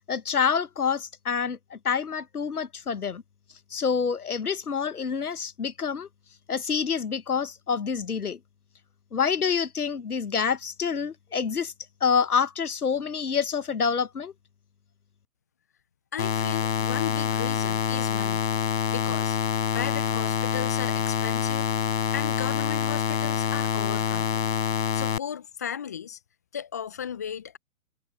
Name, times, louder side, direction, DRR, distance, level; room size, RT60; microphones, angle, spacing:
voice 1, 0.1-3.2 3.7-6.1 6.5-8.4 9.1-11.7 12.0-14.3, left 6 dB, 80° left, 1.1 m, -27 dB
voice 2, 16.1-18.4 18.9-19.4 19.7-21.7 22.1-24.4 24.9-26.2 26.5-27.6, left 8 dB, 10° left, 0.5 m, -35 dB
sound 1, 16.2-25.2, left 7 dB, 60° left, 4.0 m, -26 dB
figure-of-eight pair, 130°, 44 cm